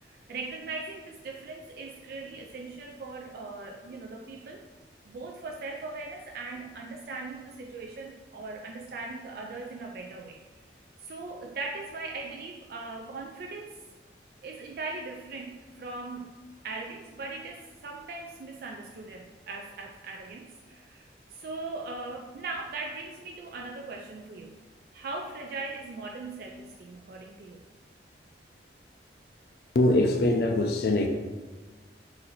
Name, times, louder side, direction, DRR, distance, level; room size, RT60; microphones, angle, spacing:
voice 1, 0.0-4.6 5.0-10.4 11.0-13.7 14.4-16.3 16.6-24.6 24.9-27.6, right 3 dB, 55° right, 1 dB, 0.3 m, -39 dB
voice 2, 29.7-31.1, left 2 dB, 55° left, 4 dB, 0.4 m, -23 dB
4.2 x 2.6 x 4.0 m, 1.3 s
head